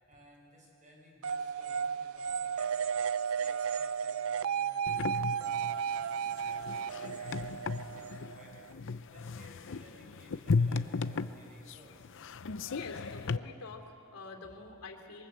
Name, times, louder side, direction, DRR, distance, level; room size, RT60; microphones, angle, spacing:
voice 1, 0.1-4.8 5.4-12.1 14.4-14.5, right 1 dB, 35° right, -1 dB, 6.9 m, -58 dB
sound 1, 1.2-8.7, right 7 dB, 70° right, 0.5 m, -34 dB
sound 2, 4.9-13.4, left 4 dB, 60° left, 0.6 m, -35 dB
voice 2, 12.7-15.3, left 3 dB, 75° left, 3 dB, 3.2 m, -47 dB
26.0 x 23.0 x 8.1 m, 2.8 s
head